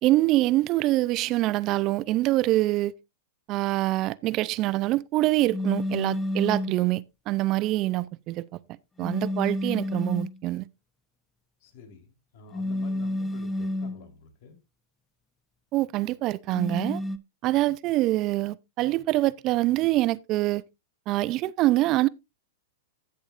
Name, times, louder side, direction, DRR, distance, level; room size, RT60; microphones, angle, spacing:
voice 1, 0.0-2.9 3.5-8.5 9.0-10.7 15.7-17.0 17.4-20.6 21.1-22.1, right 17 dB, 40° right, 0.5 m, -25 dB
sound 1, 5.5-6.8 9.0-10.4 12.5-14.1 16.5-17.2, left 1 dB, 15° left, 0.8 m, -30 dB
voice 2, 11.6-14.6, left 5 dB, 60° left, 3.7 m, -49 dB
16.0 x 7.1 x 2.5 m
hypercardioid pair, 110°, 0 cm